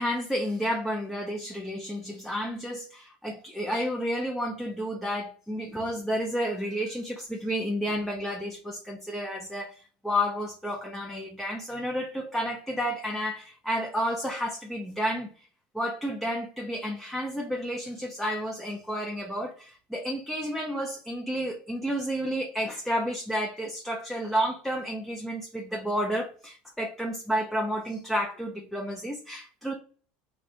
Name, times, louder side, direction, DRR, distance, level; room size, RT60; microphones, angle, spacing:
voice 1, 0.0-15.3 15.7-29.7, equal, ahead, 0.4 m, -31 dB
3.1 x 2.6 x 2.5 m
supercardioid pair, 140°, 4 cm